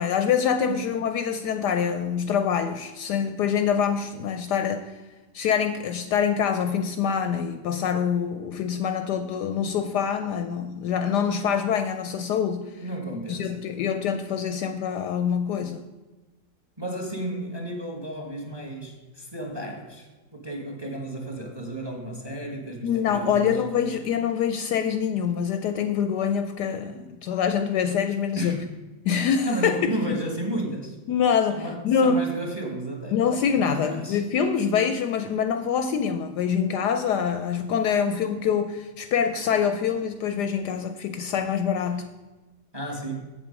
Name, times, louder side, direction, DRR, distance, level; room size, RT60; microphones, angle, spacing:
voice 1, 0.0-4.9 5.3-12.7 13.3-15.8 22.8-28.6 29.1-30.2 31.1-32.2 33.1-42.1, left 7 dB, 70° left, 9 dB, 1.0 m, -25 dB
voice 2, 12.8-13.6 16.8-23.6 28.3-28.7 29.4-31.0 31.5-33.2 33.6-34.2 42.7-43.2, right 1 dB, 15° right, 3 dB, 1.0 m, -33 dB
7.6 x 7.4 x 5.1 m, 1.2 s
omnidirectional pair, 2.0 m